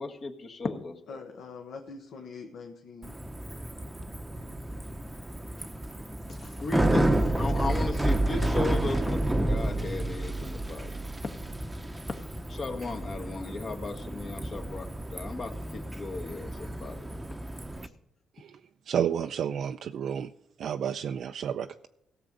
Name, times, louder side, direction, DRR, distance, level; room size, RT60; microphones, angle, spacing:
voice 1, 0.0-1.2 5.6-5.7 6.3-10.9 12.5-17.1, left 3 dB, 45° left, 4 dB, 1.5 m, -36 dB
voice 2, 1.1-3.2, left 4 dB, 70° left, 2 dB, 1.3 m, -43 dB
Bicycle, 3.0-17.9, right 1 dB, 10° right, 0.8 m, -30 dB
voice 3, 18.9-20.3 20.6-21.9, right 8 dB, 65° right, 7 dB, 0.4 m, -31 dB
17.0 x 6.9 x 5.2 m, 0.80 s
cardioid pair, 90°, 0 cm